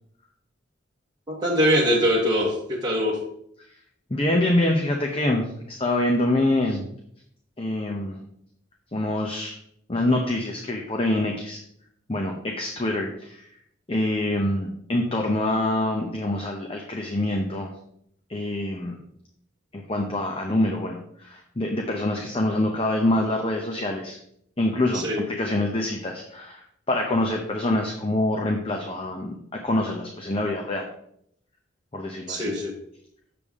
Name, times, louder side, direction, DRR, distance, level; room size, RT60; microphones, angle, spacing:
voice 1, 1.3-3.2 24.9-25.2 32.3-32.8, equal, 20° right, -4 dB, 1.1 m, -23 dB
voice 2, 4.1-6.9 7.6-8.2 8.9-9.6 9.9-11.6 12.1-13.4 13.9-17.7 18.3-19.0 19.7-24.2 24.6-30.9 31.9-32.5, left 1 dB, 30° left, 2 dB, 0.7 m, -25 dB
6.9 x 6.8 x 3.6 m, 0.70 s
head